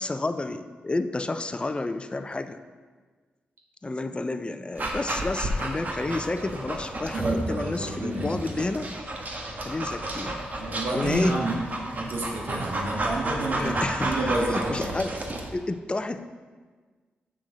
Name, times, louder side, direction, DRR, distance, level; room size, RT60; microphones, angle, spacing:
voice 1, 0.0-2.6 3.8-8.9 9.6-10.4 10.9-11.4 13.5-15.2 15.5-16.2, left 2 dB, 25° left, 10 dB, 0.5 m, -30 dB
Dog, 4.8-15.5, right 1 dB, 45° right, 1.3 m, -32 dB
voice 2, 7.1-8.4 10.6-11.7 12.0-13.7 14.0-14.9, right 2 dB, 70° right, -1 dB, 1.6 m, -29 dB
7.6 x 6.1 x 3.9 m, 1.4 s
supercardioid pair, 50°, 4 cm